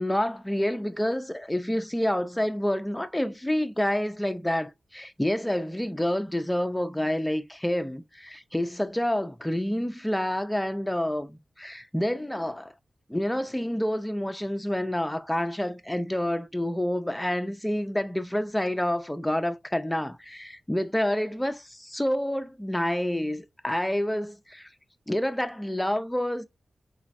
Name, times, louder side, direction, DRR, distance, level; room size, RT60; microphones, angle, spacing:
voice 1, 0.0-12.7 13.1-24.7 25.1-26.4, left 1 dB, 5° left, 0.4 m, -28 dB
4.2 x 4.0 x 2.4 m
wide cardioid pair, 115°, 0 cm